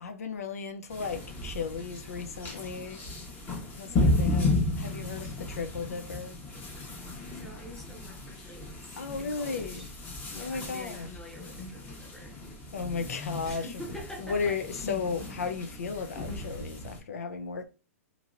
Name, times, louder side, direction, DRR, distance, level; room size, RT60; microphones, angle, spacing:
voice 1, 0.0-3.0 3.8-6.4 9.0-9.9 10.3-11.1 12.7-13.7 14.2-17.7, left 5 dB, 90° left, 0.5 m, -35 dB
sound 1, 0.9-17.0, left 2 dB, 25° left, 1.0 m, -34 dB
voice 2, 3.9-4.3 7.3-9.9 10.3-12.4 13.4-14.6, equal, 5° left, 0.8 m, -46 dB
3.0 x 2.8 x 2.4 m
hypercardioid pair, 130°, 8 cm